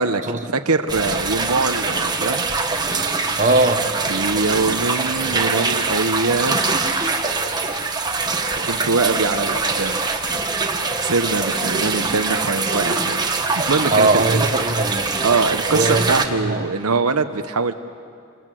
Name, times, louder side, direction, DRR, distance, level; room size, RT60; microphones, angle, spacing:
voice 1, 0.5-2.5 4.1-6.7 8.7-10.0 11.0-14.4 15.2-17.7, right 3 dB, 80° right, 8 dB, 1.1 m, -22 dB
sound 1, 0.9-16.3, right 3 dB, 20° right, 1.6 m, -23 dB
voice 2, 3.4-3.9 8.6-8.7 13.9-15.1 15.7-16.1 16.4-16.6, right 2 dB, 35° right, 5 dB, 1.4 m, -19 dB
29.0 x 26.5 x 7.8 m, 2.3 s
head